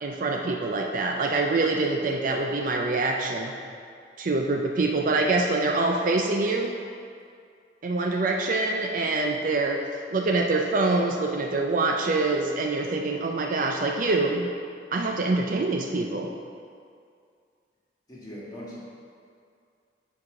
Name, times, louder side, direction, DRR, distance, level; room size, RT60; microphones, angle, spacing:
voice 1, 0.0-3.5 4.2-6.8 7.8-9.8 10.1-14.5 14.9-16.3, right 3 dB, 45° right, 2 dB, 0.4 m, -25 dB
voice 2, 18.1-18.8, equal, 20° left, -7 dB, 1.6 m, -40 dB
7.2 x 4.7 x 4.8 m, 2.3 s
head